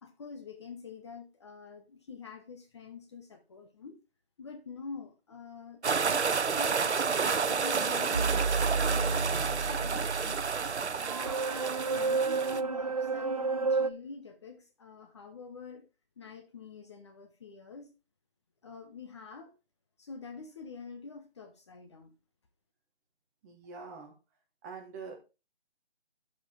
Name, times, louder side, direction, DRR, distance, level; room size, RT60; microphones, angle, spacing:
voice 1, 0.0-4.0 4.4-8.4 8.7-11.0 11.8-15.9 16.2-17.9 18.6-19.5 20.0-22.1, left 4 dB, 25° left, 0.9 m, -46 dB
sound 1, 5.8-12.6, right 5 dB, 90° right, 0.7 m, -30 dB
sound 2, 8.1-13.9, right 4 dB, 35° right, 0.4 m, -31 dB
voice 2, 23.4-24.1 24.6-25.2, right 5 dB, 15° right, 1.3 m, -44 dB
12.0 x 5.0 x 3.7 m
figure-of-eight pair, 150°, 33 cm